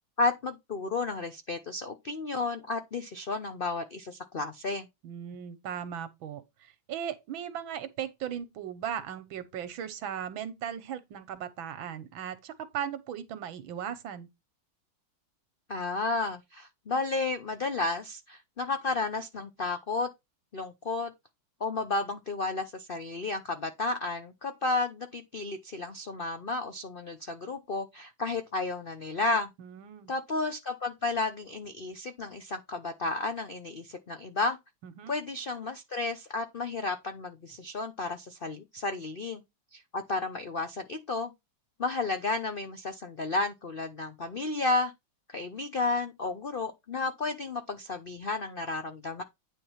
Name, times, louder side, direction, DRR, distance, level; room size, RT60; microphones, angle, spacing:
voice 1, 0.2-4.9 15.7-20.1 20.5-21.1 21.6-29.5 30.1-34.6 35.1-39.4 39.7-41.3 41.8-44.9 45.3-49.2, left 3 dB, 45° left, 0.7 m, -32 dB
voice 2, 5.0-14.3 29.6-30.1 34.8-35.1, right 9 dB, 85° right, 1.8 m, -37 dB
9.7 x 3.7 x 5.6 m
omnidirectional pair, 2.1 m